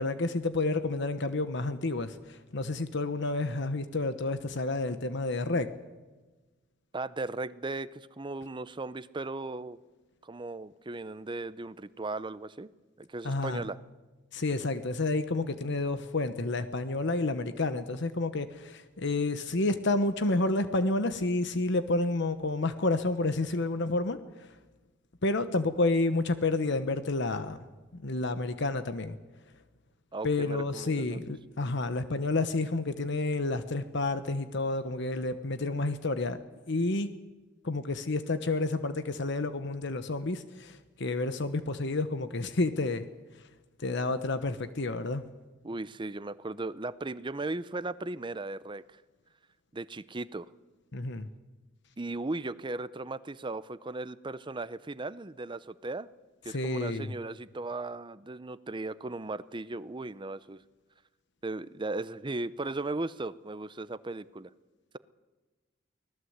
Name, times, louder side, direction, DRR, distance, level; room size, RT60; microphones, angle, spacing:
voice 1, 0.0-5.7 13.2-13.6 14.3-24.5 25.2-27.6 27.9-29.2 30.2-36.4 36.7-37.1 37.6-43.0 43.8-45.2 50.9-51.3 56.5-57.1, left 2 dB, 65° left, 10 dB, 1.1 m, -30 dB
voice 2, 6.9-9.8 10.2-12.7 13.0-13.8 30.1-31.2 45.6-48.8 49.7-50.5 52.0-56.1 56.4-60.6 61.4-64.5, right 2 dB, 25° right, 15 dB, 0.6 m, -37 dB
24.5 x 18.0 x 8.0 m, 1.2 s
head